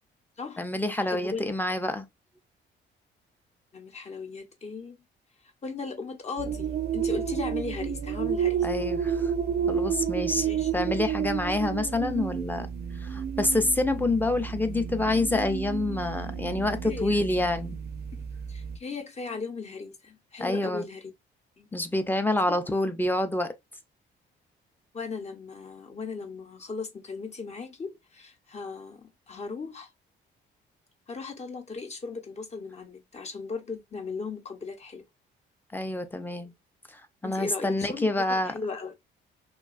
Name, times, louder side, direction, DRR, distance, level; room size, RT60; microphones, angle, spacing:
voice 1, 0.6-2.1 8.6-9.3 9.7-10.5 10.7-12.7 13.0-17.8 20.4-20.8 21.7-23.5 35.7-36.5 36.9-38.5, left 2 dB, 10° left, 0.5 m, -27 dB
voice 2, 3.7-5.0 5.6-8.7 10.4-10.7 16.8-17.2 18.5-21.1 21.6-21.7 24.9-29.9 31.1-35.0 37.2-38.9, left 4 dB, 35° left, 0.8 m, -37 dB
sound 1, 6.4-18.8, right 8 dB, 55° right, 0.4 m, -31 dB
3.0 x 2.2 x 2.4 m
cardioid pair, 90°, 20 cm